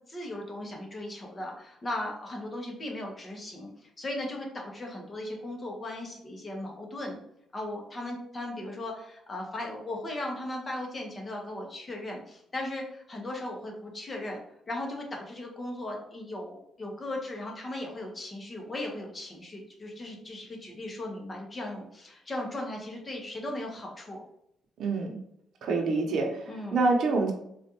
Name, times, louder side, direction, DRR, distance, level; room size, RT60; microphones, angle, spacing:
voice 1, 0.1-7.2 7.5-14.4 14.7-24.2 26.4-26.8, left 1 dB, 30° left, 0 dB, 1.0 m, -37 dB
voice 2, 24.8-25.2 25.6-27.3, right 3 dB, 65° right, 2 dB, 0.8 m, -26 dB
4.2 x 2.4 x 2.9 m, 0.74 s
cardioid pair, 90°, 0 cm